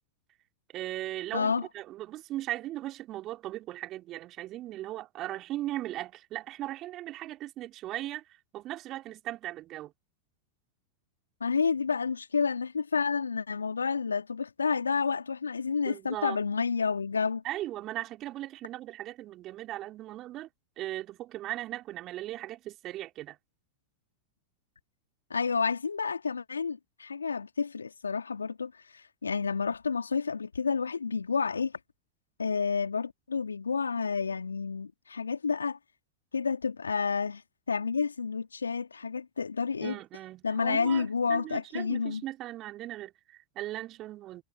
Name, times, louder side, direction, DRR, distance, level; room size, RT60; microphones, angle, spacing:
voice 1, 0.7-8.2 8.5-9.9 15.8-16.4 17.4-20.5 20.8-23.4 39.8-44.4, right 15 dB, 40° right, 4.9 m, -38 dB
voice 2, 1.3-1.7 11.4-17.4 25.3-31.7 32.4-35.8 36.3-37.4 37.7-39.9 40.4-42.2, left 5 dB, 80° left, 2.6 m, -30 dB
figure-of-eight pair, 85°, 0 cm